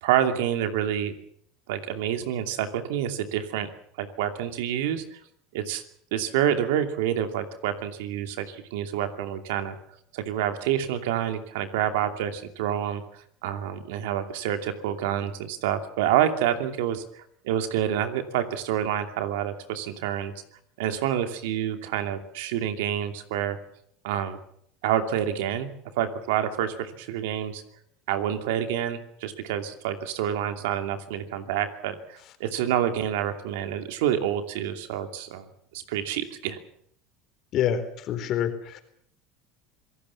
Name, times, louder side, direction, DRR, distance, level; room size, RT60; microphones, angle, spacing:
voice 1, 0.0-1.2 1.7-3.7 4.0-5.2 5.5-5.8 6.1-9.8 10.1-13.0 13.4-20.3 20.8-23.6 24.0-24.4 24.8-25.7 25.9-27.6 28.1-35.5 35.7-36.6, right 10 dB, 85° right, 8 dB, 2.6 m, -28 dB
voice 2, 37.5-38.8, left 9 dB, 50° left, 9 dB, 3.9 m, -27 dB
26.5 x 17.5 x 7.2 m, 0.67 s
supercardioid pair, 110°, 0 cm